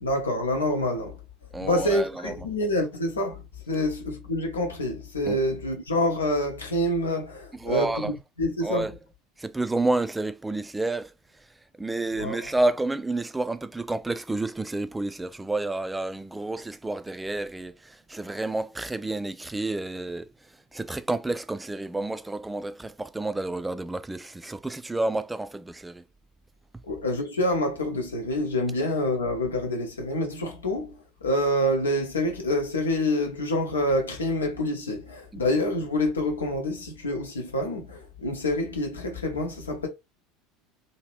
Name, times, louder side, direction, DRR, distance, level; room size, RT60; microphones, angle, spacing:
voice 1, 0.0-1.2 1.6-8.1 8.4-8.9 12.1-12.5 26.8-39.9, left 1 dB, 80° left, 0.9 m, -27 dB
voice 2, 1.5-2.3 5.3-5.4 7.6-8.1 8.6-8.9 9.4-11.1 11.8-20.3 20.7-26.0 35.3-35.4, right 2 dB, 10° right, 0.3 m, -30 dB
2.8 x 2.8 x 3.0 m
figure-of-eight pair, 70°, 0 cm